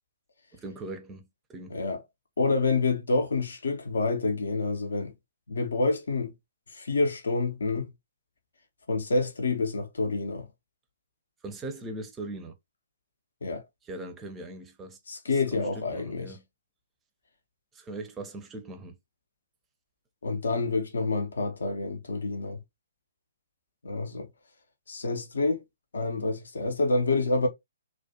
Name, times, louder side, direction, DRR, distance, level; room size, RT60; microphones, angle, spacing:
voice 1, 0.5-1.8 11.4-12.6 13.8-15.0 15.5-16.4 17.7-19.0, right 2 dB, 15° right, 0.5 m, -40 dB
voice 2, 2.4-5.1 5.5-6.3 6.7-7.9 8.9-10.5 13.4-13.6 15.1-16.3 20.2-22.6 23.8-24.3 24.9-25.6 25.9-27.5, left 3 dB, 65° left, 0.6 m, -28 dB
2.4 x 2.1 x 2.6 m
figure-of-eight pair, 125°, 0 cm